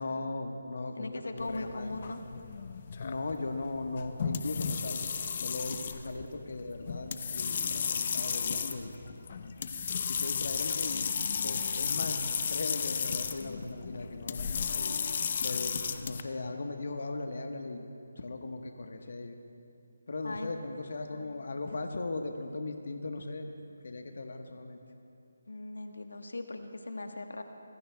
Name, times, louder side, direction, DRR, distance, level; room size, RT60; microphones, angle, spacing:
voice 1, 0.0-1.9 3.0-5.1 5.4-8.9 10.0-11.1 11.4-12.2 12.5-14.9 15.4-17.9 18.2-19.4 20.1-23.5 23.8-24.8, left 3 dB, 60° left, 4 dB, 1.2 m, -38 dB
voice 2, 1.0-2.2 20.2-20.5 25.5-27.4, left 2 dB, 80° left, 5 dB, 1.2 m, -39 dB
sound 1, 1.4-16.2, left 6 dB, 40° left, 0.7 m, -34 dB
26.0 x 21.5 x 2.3 m, 2.7 s
figure-of-eight pair, 160°, 0 cm